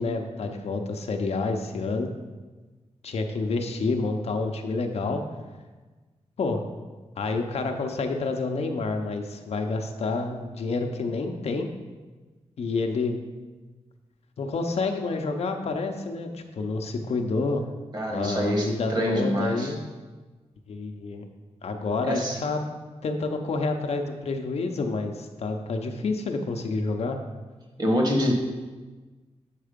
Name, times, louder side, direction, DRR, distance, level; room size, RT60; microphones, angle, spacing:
voice 1, 0.0-2.1 3.0-5.2 6.4-6.6 7.2-11.7 12.6-13.2 14.4-17.7 18.1-19.8 20.7-21.3 21.6-22.6 23.0-27.2, left 3 dB, 65° left, 4 dB, 0.7 m, -28 dB
voice 2, 17.9-19.7 22.1-22.4 27.8-28.3, equal, 40° right, 1 dB, 1.4 m, -25 dB
7.3 x 4.7 x 5.1 m, 1.3 s
wide cardioid pair, 135°, 11 cm